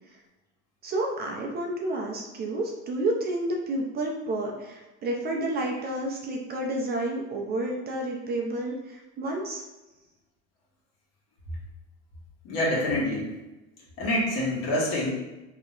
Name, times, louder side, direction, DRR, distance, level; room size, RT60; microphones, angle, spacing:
voice 1, 0.8-9.6, right 1 dB, 30° right, 1 dB, 0.5 m, -30 dB
voice 2, 12.4-13.3 14.0-15.1, left 1 dB, 55° left, -4 dB, 1.3 m, -26 dB
2.9 x 2.1 x 3.8 m, 1.1 s
supercardioid pair, 125°, 30 cm